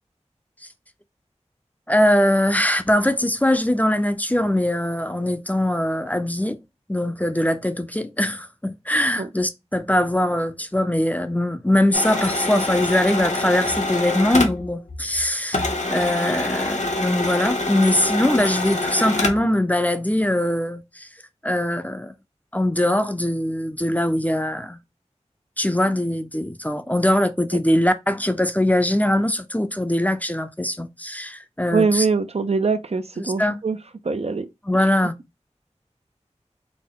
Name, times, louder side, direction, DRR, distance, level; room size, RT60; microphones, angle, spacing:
voice 1, 1.9-6.6 6.9-15.6 15.9-21.1 21.4-22.1 22.5-24.8 25.6-32.0 33.2-33.6 34.7-35.1, left 1 dB, 15° left, 0.5 m, -22 dB
sound 1, 11.9-15.2 15.5-19.5, left 2 dB, 75° left, 0.8 m, -25 dB
voice 2, 31.7-33.8 34.0-34.5 34.8-34.9, right 4 dB, 60° right, 0.4 m, -23 dB
4.1 x 2.1 x 3.7 m
wide cardioid pair, 55°, 12 cm